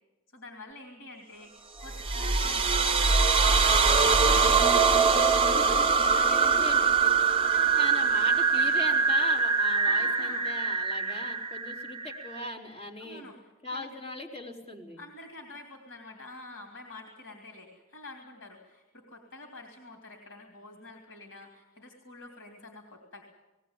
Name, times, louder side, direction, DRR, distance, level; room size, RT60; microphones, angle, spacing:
voice 1, 0.3-8.2 8.5-8.7 9.8-10.5 13.0-13.9 15.0-23.2, left 2 dB, 85° left, 2 dB, 3.2 m, -47 dB
sound 1, 1.8-12.5, right 5 dB, 25° right, 0.8 m, -23 dB
voice 2, 6.4-6.8 7.8-13.2 13.6-15.0, left 1 dB, 30° left, -3 dB, 4.3 m, -39 dB
19.5 x 18.5 x 8.9 m, 1.1 s
head